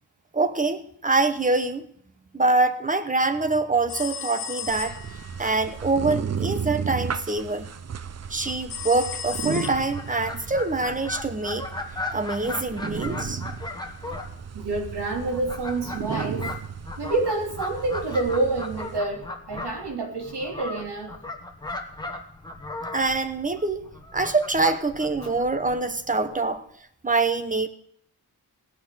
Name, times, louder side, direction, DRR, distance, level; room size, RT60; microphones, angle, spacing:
voice 1, 0.3-1.9 2.3-5.0 5.4-7.7 8.3-11.7 12.1-13.4 22.9-23.8 24.1-26.7 27.0-27.7, right 3 dB, 20° right, 10 dB, 0.9 m, -25 dB
sound 1, 3.9-5.3 8.7-10.2, left 7 dB, 85° left, 1.3 m, -35 dB
sound 2, 4.7-19.0, right 7 dB, 40° right, 0.5 m, -35 dB
Fowl, 9.2-26.5, left 2 dB, 10° left, 1.4 m, -37 dB
voice 2, 14.5-16.5 17.0-21.1, right 2 dB, 85° right, 1 dB, 3.0 m, -28 dB
18.0 x 5.9 x 9.0 m, 0.65 s
wide cardioid pair, 170°, 39 cm